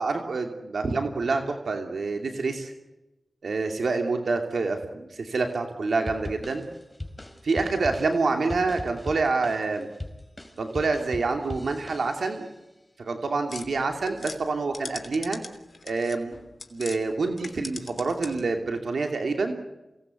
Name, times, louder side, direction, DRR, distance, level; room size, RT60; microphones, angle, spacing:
voice 1, 0.0-2.7 3.4-6.7 7.4-9.9 10.6-12.5 13.0-15.4 15.8-16.3 16.7-19.6, right 3 dB, 85° right, 4 dB, 2.7 m, -27 dB
sound 1, 6.1-12.5, left 1 dB, 15° left, 4.6 m, -40 dB
sound 2, 13.5-17.0 17.3-18.6, left 3 dB, 60° left, 3.1 m, -41 dB
28.0 x 19.0 x 8.2 m, 0.99 s
cardioid pair, 55°, 0 cm